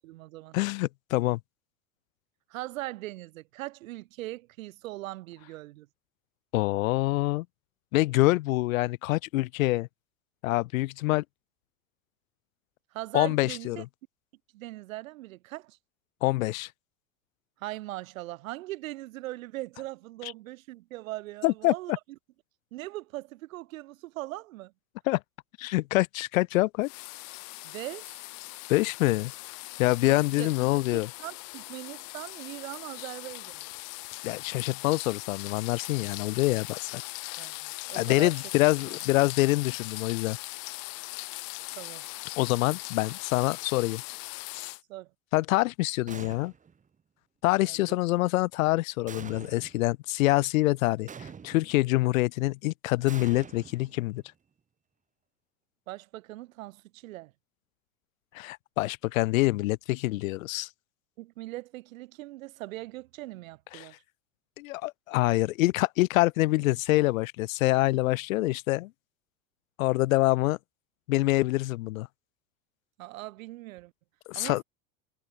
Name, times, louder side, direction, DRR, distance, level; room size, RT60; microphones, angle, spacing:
voice 1, 0.0-0.6 2.5-5.9 12.9-13.8 14.5-15.8 17.6-21.9 22.7-24.7 27.6-28.3 30.0-33.6 37.4-38.4 41.7-42.1 44.9-45.1 47.6-48.0 55.9-57.3 61.2-63.9 73.0-73.9 74.3-74.6, right 18 dB, 75° right, 3.1 m, -40 dB
voice 2, 0.5-1.4 6.5-7.5 7.9-9.9 10.4-11.2 13.1-13.9 16.2-16.7 21.4-21.7 25.1-25.2 25.6-26.9 28.7-29.3 29.8-31.1 34.2-37.4 37.9-40.4 42.4-44.0 44.5-44.7 45.3-46.5 47.4-54.2 58.3-60.7 63.7-63.9 64.6-68.9 69.8-70.6 71.1-72.1 74.3-74.6, left 19 dB, 80° left, 0.8 m, -26 dB
sound 1, 26.8-44.8, left 40 dB or more, 60° left, 1.9 m, -40 dB
sound 2, 46.1-46.8 49.1-49.9 51.1-51.9 53.1-54.3, right 6 dB, 20° right, 1.8 m, -45 dB
supercardioid pair, 120°, 40 cm